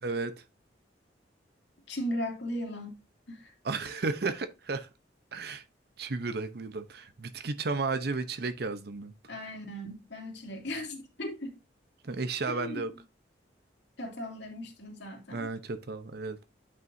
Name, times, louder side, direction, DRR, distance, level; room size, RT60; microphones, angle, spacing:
voice 1, 0.0-0.3 3.6-4.9 5.3-5.6 6.0-9.1 12.0-12.9 15.3-16.4, right 3 dB, 60° right, 0.7 m, -33 dB
voice 2, 1.9-2.9 3.3-3.5 9.3-11.6 12.5-12.8 14.0-15.5, equal, 75° left, 2.5 m, -37 dB
9.3 x 6.0 x 2.6 m
head